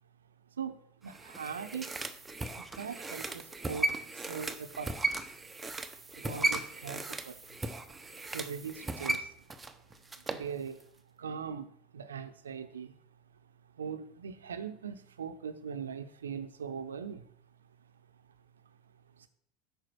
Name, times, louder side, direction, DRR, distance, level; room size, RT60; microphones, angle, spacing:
voice 1, 0.6-2.0 2.6-5.2 6.2-7.4 8.3-9.4 10.3-10.8 11.2-12.9 13.8-17.3, right 7 dB, 75° right, 9 dB, 0.7 m, -41 dB
sound 1, 1.1-10.5 10.8-10.9, right 3 dB, 15° right, 0.8 m, -36 dB
9.0 x 5.3 x 6.0 m, 0.64 s
figure-of-eight pair, 80°, 0 cm